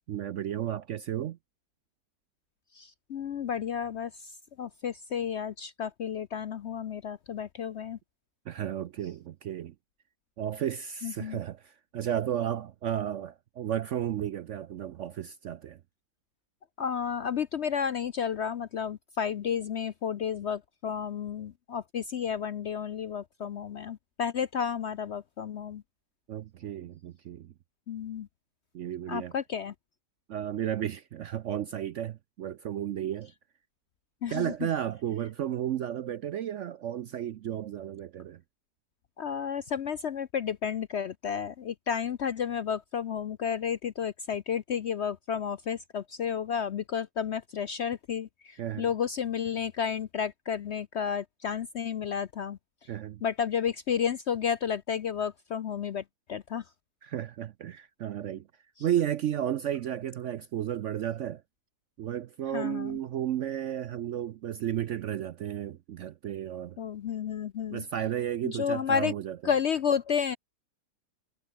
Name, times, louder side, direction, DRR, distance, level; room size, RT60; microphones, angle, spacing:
voice 1, 0.1-1.4 8.5-9.7 10.4-15.8 26.3-27.5 28.7-29.3 30.3-33.3 34.3-38.4 48.6-48.9 52.9-53.2 57.0-58.5 58.8-61.4 62.0-66.8 67.7-69.4, right 10 dB, 65° right, 0.7 m, -33 dB
voice 2, 2.7-8.0 11.0-11.4 16.8-25.8 27.9-28.3 29.1-29.7 34.2-34.7 39.2-52.9 53.2-56.0 56.3-56.7 62.5-63.0 66.8-67.8 68.4-69.1 69.4-70.4, left 7 dB, 60° left, 0.7 m, -32 dB
omnidirectional pair, 1.8 m